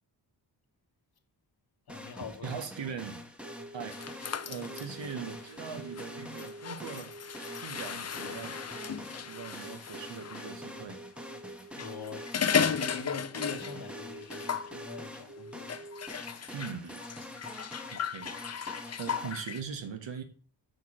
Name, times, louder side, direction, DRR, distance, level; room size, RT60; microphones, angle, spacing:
voice 1, 1.9-2.6 11.7-12.3 12.6-15.7, left 5 dB, 55° left, 1.1 m, -42 dB
sound 1, 1.9-19.3, left 1 dB, ahead, 1.0 m, -46 dB
voice 2, 2.4-3.2 3.7-7.1 7.6-8.6 9.3-11.0 16.5-17.0 17.9-18.3 19.0-20.2, right 6 dB, 75° right, 1.2 m, -40 dB
sound 2, 3.4-16.1, right 2 dB, 40° right, 1.6 m, -48 dB
sound 3, 3.9-10.5 11.6-13.9 14.2-14.7 15.7-19.6, left 7 dB, 35° left, 0.5 m, -36 dB
6.6 x 4.4 x 4.9 m
wide cardioid pair, 85°, 44 cm